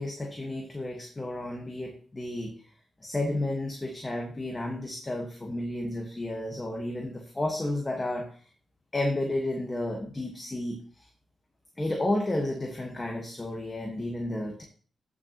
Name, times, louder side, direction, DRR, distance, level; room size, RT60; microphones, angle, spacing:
voice 1, 0.0-2.5 3.0-8.3 8.9-11.1 11.8-14.6, left 1 dB, 20° left, 1 dB, 1.5 m, -32 dB
15.0 x 6.6 x 3.0 m, 0.42 s
wide cardioid pair, 125°, 0 cm